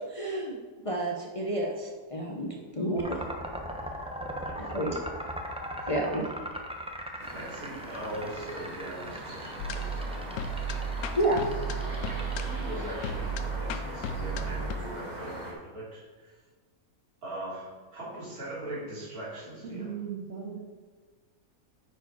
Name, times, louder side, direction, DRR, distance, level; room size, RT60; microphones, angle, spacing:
voice 1, 0.1-0.6 0.8-3.2 4.5-5.0 5.9-6.2 11.2-11.4, right 1 dB, 30° left, -2 dB, 0.8 m, -30 dB
voice 2, 2.4-3.3 4.4-4.9 5.8-5.9 7.3-10.7 11.8-16.4 17.2-19.9, right 1 dB, 80° right, -8 dB, 3.5 m, -41 dB
sound 1, 3.0-12.7, equal, 5° right, 0.4 m, -39 dB
sound 2, 7.2-15.5, right 1 dB, 30° right, 1.4 m, -41 dB
sound 3, 9.6-14.7, right 2 dB, 85° left, 1.1 m, -34 dB
voice 3, 19.6-20.6, right 7 dB, 50° right, -2 dB, 2.0 m, -37 dB
9.8 x 4.5 x 4.7 m, 1.4 s
omnidirectional pair, 1.5 m